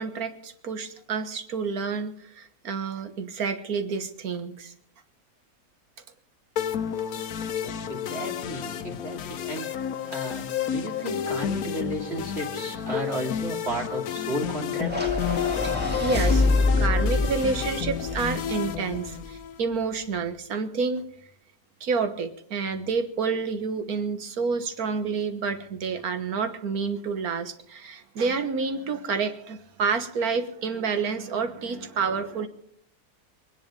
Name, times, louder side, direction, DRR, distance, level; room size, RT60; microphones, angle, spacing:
voice 1, 0.0-4.7 16.0-16.5 16.8-21.1 21.8-32.5, right 5 dB, 65° right, 9 dB, 1.7 m, -29 dB
sound 1, 6.6-19.6, left 9 dB, 65° left, 1.2 m, -31 dB
voice 2, 7.6-9.7 10.1-15.1, right 1 dB, 40° right, 0 dB, 2.9 m, -34 dB
sound 2, 14.9-19.3, left 3 dB, 5° right, 2.2 m, -25 dB
23.0 x 10.0 x 5.2 m, 0.66 s
omnidirectional pair, 1.8 m